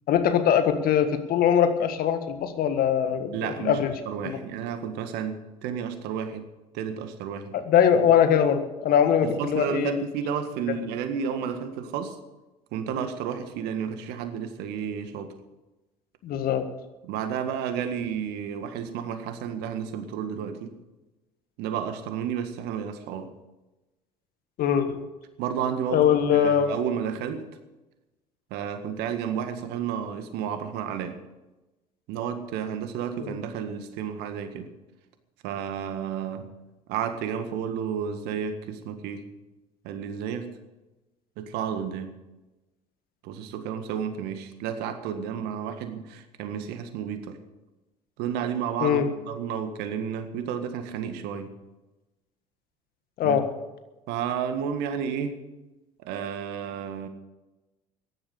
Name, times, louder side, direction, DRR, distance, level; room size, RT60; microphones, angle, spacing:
voice 1, 0.1-3.9 4.3-4.4 7.5-10.0 16.2-16.7 24.6-25.0 25.9-26.8 33.2-33.3 48.8-49.0 53.2-53.5, left 8 dB, 55° left, 8 dB, 1.7 m, -22 dB
voice 2, 3.3-3.8 4.1-6.5 6.7-7.6 9.2-12.2 12.7-15.3 17.0-20.7 21.6-23.3 25.4-27.5 28.5-31.2 32.1-34.7 35.4-36.5 36.9-39.2 39.8-40.5 41.4-42.1 43.2-47.4 48.2-51.5 53.2-53.4 54.1-55.4 56.0-57.1, right 8 dB, 65° right, 9 dB, 1.7 m, -31 dB
15.5 x 11.0 x 6.6 m, 1.1 s
hypercardioid pair, 65°, 18 cm